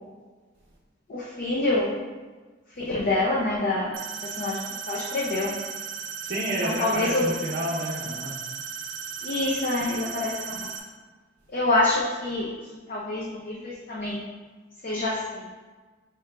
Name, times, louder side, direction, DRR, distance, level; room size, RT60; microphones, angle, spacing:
voice 1, 1.1-1.9 2.8-4.0 4.2-4.6 4.9-5.5 6.6-7.3 9.2-10.7 11.5-12.5 12.9-14.2 14.8-15.5, left 2 dB, 50° left, -4 dB, 0.5 m, -26 dB
sound 1, 3.9-10.8, right 6 dB, 90° right, 0.7 m, -36 dB
voice 2, 6.2-8.4, right 1 dB, 55° right, -8 dB, 0.7 m, -29 dB
4.7 x 4.5 x 2.2 m, 1.3 s
head